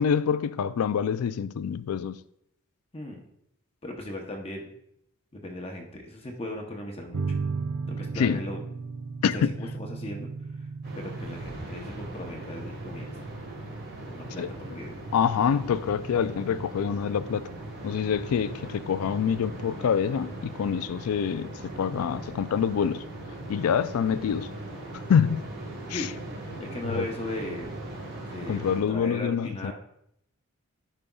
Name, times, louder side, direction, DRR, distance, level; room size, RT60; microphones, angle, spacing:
voice 1, 0.0-2.2 8.2-8.4 9.2-9.5 14.4-14.5 15.1-17.5 17.8-23.0 23.5-24.5 25.1-25.4 25.9-26.1 26.8-27.1 28.5-29.7, left 7 dB, 80° left, 0.3 m, -26 dB
voice 2, 3.8-4.7 5.3-7.2 7.9-8.6 9.3-10.3 10.9-13.2 14.1-14.9 25.9-26.1 26.5-27.8 28.3-29.7, left 1 dB, 25° left, 0.8 m, -37 dB
sound 1, 7.1-14.8, right 4 dB, 85° right, 0.6 m, -36 dB
sound 2, 10.8-28.8, right 1 dB, 50° right, 2.9 m, -39 dB
11.0 x 5.1 x 2.3 m
head